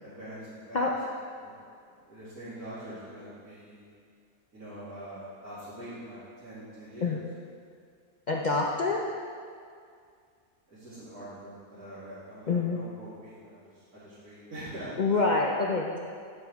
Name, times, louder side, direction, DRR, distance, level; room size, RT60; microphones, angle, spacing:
voice 1, 0.0-0.8 1.4-1.5 2.1-3.9 4.5-7.1 8.3-8.5 10.7-15.1, right 1 dB, 75° right, -15 dB, 3.1 m, -44 dB
voice 2, 8.3-9.0 12.5-12.8 15.0-16.0, left 3 dB, 65° left, -2 dB, 0.4 m, -26 dB
9.3 x 8.3 x 3.5 m, 2.2 s
omnidirectional pair, 1.6 m